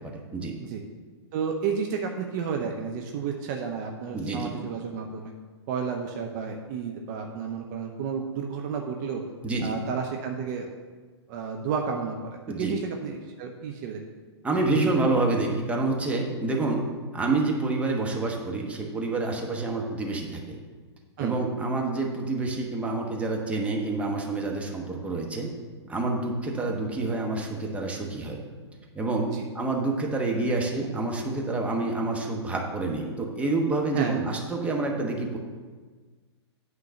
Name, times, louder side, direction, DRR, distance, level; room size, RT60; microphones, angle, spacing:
voice 1, 0.0-0.5 4.1-4.5 9.4-9.8 12.5-12.7 14.4-16.8 17.1-20.6 21.2-25.5 25.9-28.4 28.9-35.4, right 3 dB, 10° right, 0 dB, 1.1 m, -28 dB
voice 2, 1.3-5.3 5.7-9.2 9.6-10.7 11.3-14.0 21.2-21.4 29.3-29.5 33.9-34.2, right 6 dB, 40° right, 2 dB, 0.8 m, -31 dB
8.9 x 3.8 x 6.7 m, 1.4 s
figure-of-eight pair, 115°, 15 cm